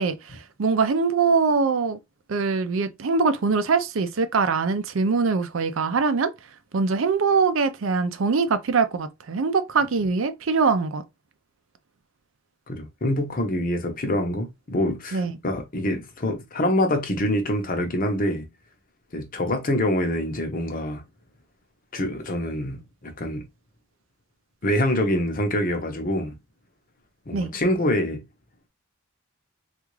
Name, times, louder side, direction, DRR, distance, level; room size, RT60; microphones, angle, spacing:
voice 1, 0.0-2.0 2.3-6.3 6.7-11.0 15.1-15.3 27.3-27.5, right 4 dB, 75° right, 0.5 m, -23 dB
voice 2, 12.7-18.5 19.1-21.0 21.9-23.5 24.6-26.3 27.3-28.2, left 1 dB, 45° left, 0.8 m, -25 dB
3.5 x 2.4 x 3.0 m
head